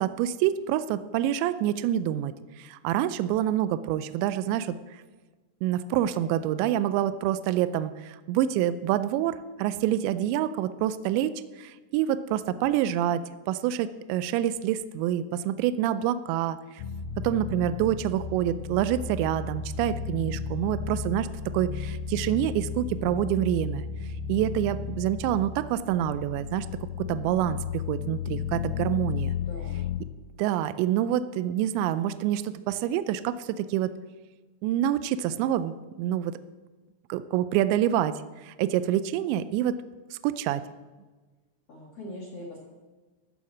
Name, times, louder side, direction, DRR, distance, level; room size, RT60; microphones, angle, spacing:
voice 1, 0.0-4.8 5.6-16.6 17.2-21.3 21.5-23.9 24.3-26.7 27.1-29.4 30.4-33.9 34.6-36.4 37.1-39.8 40.1-40.6, right 11 dB, 85° right, 13 dB, 2.6 m, -27 dB
sound 1, 16.8-30.0, left 7 dB, 85° left, 2.5 m, -34 dB
voice 2, 29.4-29.9 41.7-42.6, left 1 dB, 45° left, -3 dB, 2.2 m, -41 dB
14.0 x 7.2 x 7.3 m, 1.3 s
omnidirectional pair, 5.5 m